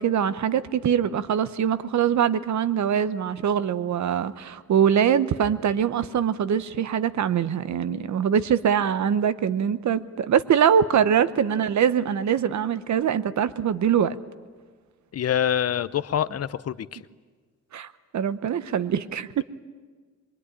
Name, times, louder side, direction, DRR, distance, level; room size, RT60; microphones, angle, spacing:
voice 1, 0.0-14.2 17.7-17.9 18.1-19.4, right 8 dB, 70° right, 14 dB, 1.0 m, -23 dB
voice 2, 15.1-17.0, left 9 dB, 55° left, 15 dB, 0.7 m, -25 dB
23.5 x 23.0 x 9.9 m, 1.5 s
wide cardioid pair, 170°, 29 cm